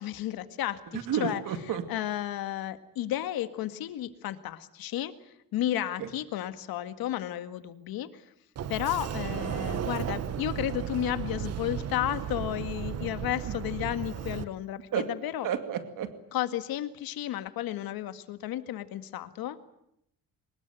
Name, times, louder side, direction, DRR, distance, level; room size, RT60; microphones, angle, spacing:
voice 1, 0.0-1.4 1.9-8.3 8.7-15.5 16.3-19.6, left 12 dB, 80° left, 10 dB, 1.9 m, -33 dB
voice 2, 0.9-1.8 6.0-6.1 13.4-13.6 14.9-15.1 15.4-16.1, right 8 dB, 60° right, 9 dB, 2.3 m, -31 dB
Sliding door, 8.6-14.4, right 9 dB, 45° right, 1.1 m, -34 dB
24.0 x 20.5 x 9.2 m, 0.77 s
cardioid pair, 170°, 35 cm